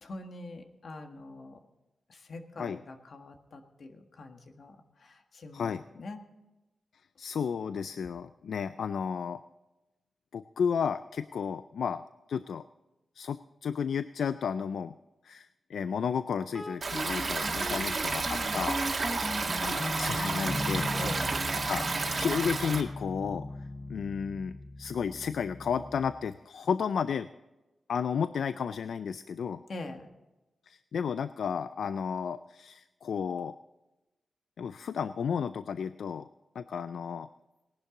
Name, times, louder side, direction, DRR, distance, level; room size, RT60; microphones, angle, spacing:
voice 1, 0.0-1.6 2.1-6.2 21.0-21.3 29.7-30.1, left 2 dB, 65° left, 5 dB, 1.6 m, -44 dB
voice 2, 7.2-9.4 10.3-12.6 13.2-14.9 15.2-18.8 19.6-20.9 21.7-23.5 23.9-27.3 27.9-29.6 30.7-33.5 34.6-36.3 36.6-37.3, left 6 dB, 85° left, 12 dB, 0.4 m, -33 dB
sound 1, 16.5-26.3, left 1 dB, 15° left, 1.0 m, -39 dB
Stream, 16.8-22.8, right 3 dB, 50° right, 2.0 m, -31 dB
19.0 x 11.0 x 3.8 m, 1.0 s
wide cardioid pair, 95°, 0 cm